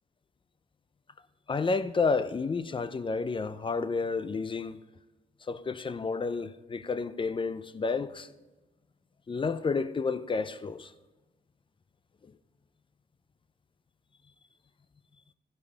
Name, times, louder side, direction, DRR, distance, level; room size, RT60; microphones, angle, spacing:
voice 1, 1.5-4.8 5.5-8.3 9.3-10.9, left 4 dB, 25° left, 0.7 m, -30 dB
15.0 x 5.3 x 6.4 m
cardioid pair, 90°, 20 cm